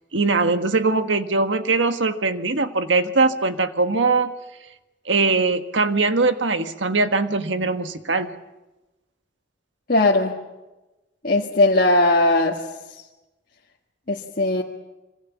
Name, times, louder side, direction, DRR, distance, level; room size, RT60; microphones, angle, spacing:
voice 1, 0.1-4.3 5.0-8.3, right 3 dB, 80° right, 8 dB, 1.5 m, -21 dB
voice 2, 9.9-10.4 11.2-12.6 14.1-14.6, left 2 dB, 50° left, -3 dB, 1.9 m, -18 dB
26.5 x 25.5 x 7.3 m, 1.1 s
head